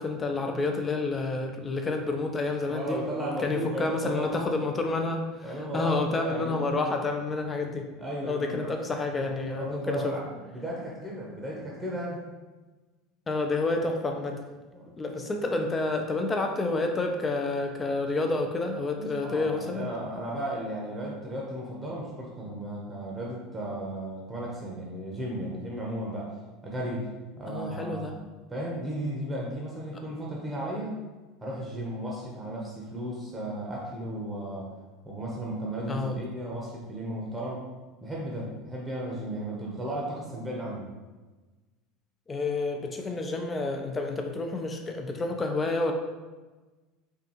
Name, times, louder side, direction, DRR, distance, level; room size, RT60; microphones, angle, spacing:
voice 1, 0.0-3.0 3.4-7.9 8.2-10.1 13.3-14.4 15.0-19.9 27.5-28.1 35.9-36.2 42.3-45.9, left 3 dB, 20° left, 4 dB, 0.6 m, -29 dB
voice 2, 2.7-4.5 5.4-6.8 8.0-8.7 9.2-12.2 14.7-14.8 19.0-26.3 26.6-27.1 27.4-28.2 28.5-31.0 31.4-34.7 35.0-37.6 38.0-40.9, right 1 dB, 15° right, -4 dB, 0.9 m, -35 dB
4.5 x 2.5 x 3.0 m, 1.2 s
supercardioid pair, 105°, 0 cm